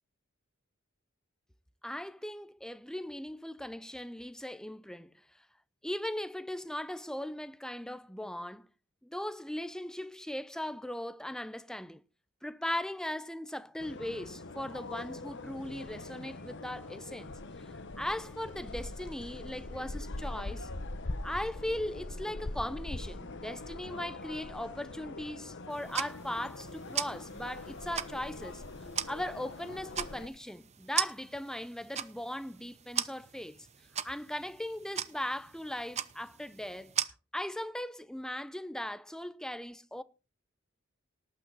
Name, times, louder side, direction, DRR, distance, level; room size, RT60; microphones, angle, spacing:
voice 1, 1.8-5.2 5.8-8.7 9.0-12.0 12.4-17.3 17.6-20.7 21.2-28.6 29.1-33.7 34.0-37.0 37.3-40.0, left 1 dB, 5° left, 0.5 m, -38 dB
sound 1, 13.8-30.3, left 2 dB, 60° left, 1.1 m, -42 dB
sound 2, 25.7-37.1, right 9 dB, 35° right, 0.8 m, -39 dB
18.5 x 8.6 x 4.0 m
head